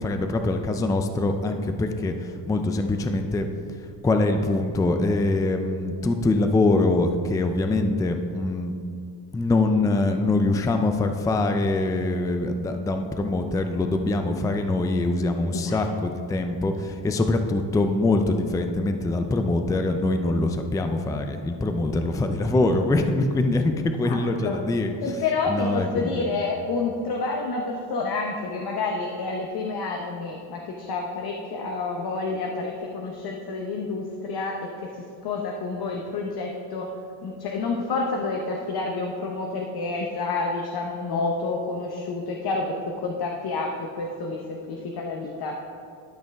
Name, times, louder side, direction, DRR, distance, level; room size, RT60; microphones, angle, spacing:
voice 1, 0.0-3.5 4.0-8.7 9.3-24.9 25.5-26.3, left 2 dB, 10° left, 6 dB, 0.4 m, -24 dB
voice 2, 24.0-24.6 25.0-36.9 37.2-45.6, left 3 dB, 50° left, 1 dB, 0.9 m, -29 dB
12.0 x 5.4 x 3.5 m, 2.4 s
cardioid pair, 105°, 47 cm